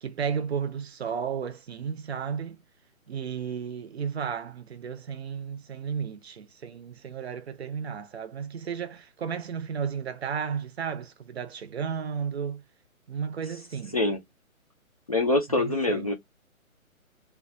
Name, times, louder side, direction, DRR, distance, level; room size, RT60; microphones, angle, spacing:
voice 1, 0.0-2.6 3.1-12.6 13.1-14.0 15.6-16.1, right 7 dB, 50° right, 0.6 m, -33 dB
voice 2, 15.1-16.1, left 2 dB, 30° left, 0.4 m, -24 dB
2.3 x 2.2 x 3.9 m
figure-of-eight pair, 135°, 42 cm